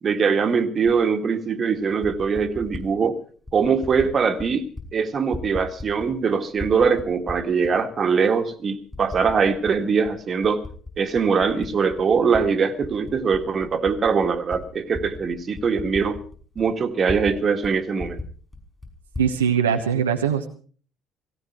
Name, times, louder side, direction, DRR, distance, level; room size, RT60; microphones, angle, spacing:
voice 1, 0.0-3.2 3.5-4.6 4.9-10.6 11.0-16.2 16.6-18.2, right 5 dB, 40° right, 8 dB, 1.9 m, -22 dB
Typing, 0.8-1.0 1.8-2.9 3.5-4.1 4.4-4.9 5.1-6.2 6.5-7.7 8.3-8.4 8.9-9.8 10.1-12.4 12.8-17.4 17.6-17.7 18.0-19.3, left 2 dB, 20° left, 5.6 m, -37 dB
voice 2, 19.2-20.5, right 8 dB, 85° right, 3 dB, 1.1 m, -21 dB
18.0 x 17.0 x 4.5 m, 0.43 s
figure-of-eight pair, 50°, 0 cm